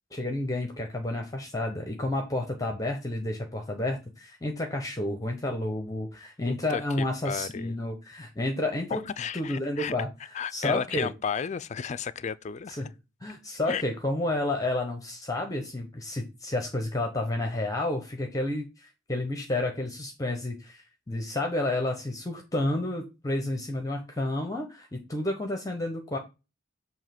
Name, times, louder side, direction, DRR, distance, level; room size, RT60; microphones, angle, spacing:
voice 1, 0.1-9.0 9.3-10.1 10.5-11.1 12.7-12.9 13.2-26.2, left 1 dB, 20° left, 0.8 m, -30 dB
voice 2, 6.5-7.8 8.9-9.9 10.3-12.8 13.7-13.8, left 6 dB, 35° left, 0.4 m, -33 dB
7.2 x 2.9 x 5.8 m
head